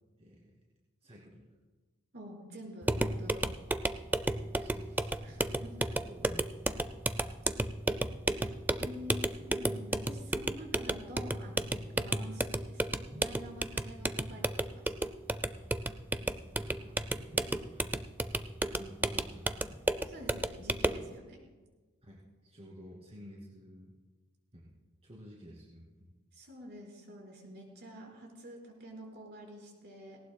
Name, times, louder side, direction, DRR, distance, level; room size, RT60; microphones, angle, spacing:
voice 1, 0.2-0.5 1.0-1.5 4.6-5.1 5.9-6.8 15.6-15.7 16.1-18.0 18.7-19.8 22.0-23.9 24.5-24.8 25.0-26.2, equal, 30° right, -4 dB, 2.3 m, -52 dB
voice 2, 2.1-3.5 5.2-5.9 8.3-8.5 8.8-14.9 20.0-21.4 26.3-30.2, equal, 55° right, -1 dB, 4.3 m, -48 dB
sound 1, 2.8-21.1, right 2 dB, 10° right, 0.4 m, -33 dB
18.5 x 18.5 x 2.2 m, 1.3 s
head